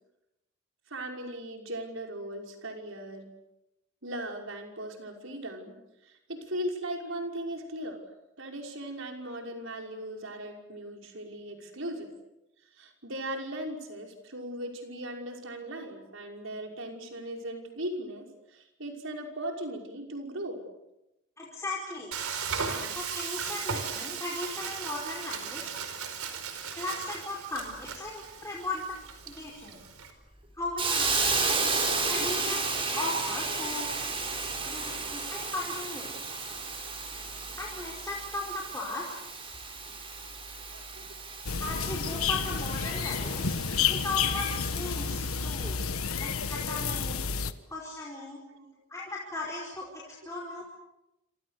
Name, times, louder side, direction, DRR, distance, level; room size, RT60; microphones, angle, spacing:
voice 1, 0.9-3.3 4.0-8.0 8.4-12.1 12.7-20.6 34.7-34.8 40.7-41.2 46.1-46.2 48.5-48.7, right 1 dB, 65° right, 2 dB, 5.7 m, -38 dB
voice 2, 21.4-22.2 22.9-25.7 26.8-28.8 29.2-29.8 30.6-31.6 32.1-34.1 34.6-36.2 37.6-39.1 41.6-43.5 43.9-45.8 46.2-47.3 47.7-48.4 48.9-50.6, left 2 dB, 15° left, -4 dB, 4.9 m, -37 dB
Frying (food), 22.1-30.1, right 6 dB, 90° right, 4.7 m, -37 dB
Hiss, 30.8-45.6, right 4 dB, 25° right, 5.9 m, -33 dB
sound 1, 41.4-47.5, left 6 dB, 85° left, 1.4 m, -30 dB
29.0 x 27.5 x 6.8 m, 0.90 s
head